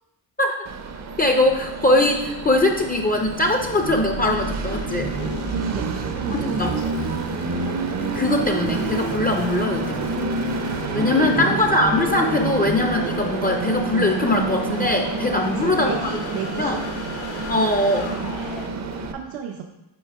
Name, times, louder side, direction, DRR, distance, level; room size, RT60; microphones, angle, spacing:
Train, 0.7-19.1, right 3 dB, 35° right, 0.6 m, -28 dB
voice 1, 1.2-5.1 6.3-6.8 8.0-10.2 10.9-16.2 16.6-16.8 17.5-18.1, left 2 dB, 20° left, 3 dB, 0.5 m, -21 dB
sound 1, 4.6-18.7, left 5 dB, 70° left, 1.0 m, -38 dB
voice 2, 5.5-6.9 11.0-11.6 15.3-16.9 18.1-18.7 19.1-19.7, right 7 dB, 75° right, 3 dB, 0.7 m, -32 dB
8.5 x 2.9 x 4.6 m, 0.94 s
cardioid pair, 115°, 46 cm